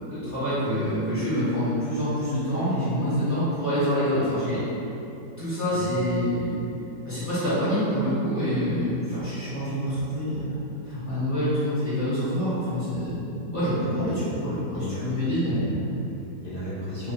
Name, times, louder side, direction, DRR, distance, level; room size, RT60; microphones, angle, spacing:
voice 1, 0.1-4.6 5.4-6.5 7.0-10.6 10.8-15.9, equal, 15° left, -14 dB, 0.9 m, -26 dB
voice 2, 13.8-14.2 14.7-15.1 15.4-15.8 16.0-17.1, left 1 dB, 65° left, -11 dB, 0.5 m, -35 dB
3.2 x 2.3 x 4.1 m, 3.0 s
omnidirectional pair, 1.8 m